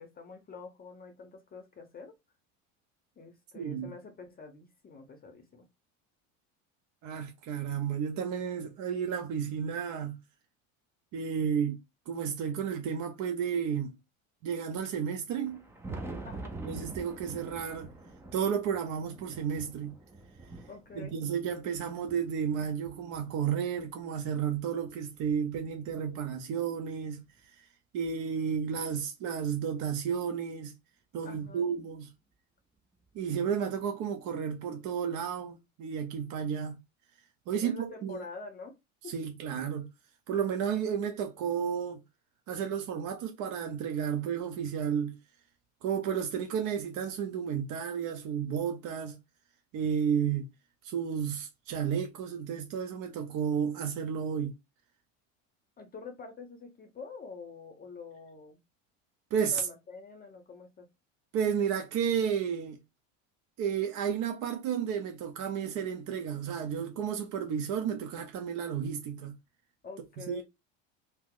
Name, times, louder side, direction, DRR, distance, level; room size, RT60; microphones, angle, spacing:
voice 1, 0.0-2.1 3.2-5.7 16.2-16.6 20.7-21.1 31.2-31.7 37.5-38.8 39.0-39.2 55.8-58.6 59.5-60.9 69.8-70.4, left 4 dB, 25° left, 0.7 m, -46 dB
voice 2, 3.5-3.9 7.0-10.2 11.1-11.8 12.1-14.0 14.4-15.6 16.7-17.9 18.3-19.9 21.0-27.2 27.6-27.7 27.9-30.7 31.1-32.1 33.1-36.8 37.5-38.2 39.1-39.9 40.3-42.0 42.5-45.1 45.8-49.2 49.7-50.5 50.8-54.5 59.3-59.6 61.3-62.8 63.6-69.3 70.3-70.4, right 7 dB, 50° right, 0.7 m, -32 dB
Thunder, 15.3-23.9 24.5-26.2 27.4-27.5 28.0-28.1 30.0-30.1 31.5-31.6 33.1-33.2, right 2 dB, 5° right, 0.3 m, -46 dB
2.8 x 2.0 x 3.6 m
supercardioid pair, 110°, 40 cm